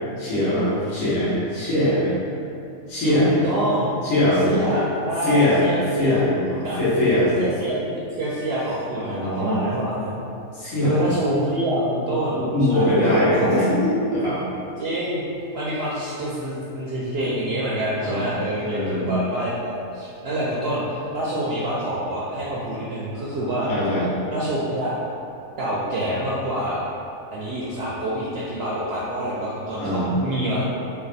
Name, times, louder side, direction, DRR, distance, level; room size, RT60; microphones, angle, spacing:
voice 1, 0.2-2.1 2.9-3.3 4.0-4.5 5.2-5.6 6.0-7.4 9.0-9.7 10.5-11.1 12.3-14.4 18.0-18.2 18.6-19.1 23.7-24.1 29.8-30.1, left 1 dB, 70° left, -10 dB, 1.5 m, -21 dB
voice 2, 3.1-3.9 4.4-6.2 6.6-6.8 7.4-10.2 10.8-12.4 12.7-13.7 14.8-15.2 15.5-23.7 24.3-25.0 25.6-26.9 27.3-30.6, right 1 dB, 65° right, -7 dB, 0.6 m, -26 dB
3.3 x 2.2 x 4.0 m, 2.6 s
omnidirectional pair, 1.5 m